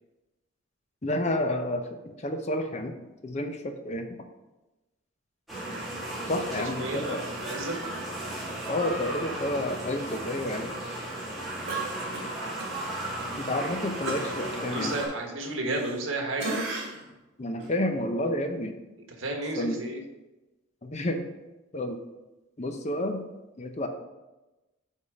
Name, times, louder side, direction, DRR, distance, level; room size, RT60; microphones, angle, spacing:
voice 1, 1.0-2.9 3.2-4.2 6.3-7.2 8.7-10.7 13.4-15.0 17.4-18.8 19.6-19.8 20.8-21.3 21.7-22.0 22.6-23.2 23.6-23.9, left 1 dB, 35° left, 6 dB, 0.6 m, -30 dB
sound 1, 5.5-15.1, right 1 dB, ahead, 1.8 m, -35 dB
voice 2, 6.6-7.8 14.2-16.5 19.2-20.0, right 2 dB, 75° right, 2 dB, 1.3 m, -33 dB
Cough, 11.7-12.7 13.1-13.2 14.0-16.1 16.4-17.1 17.6-17.7, right 2 dB, 55° right, 1.9 m, -36 dB
8.4 x 3.7 x 4.9 m, 1.0 s
head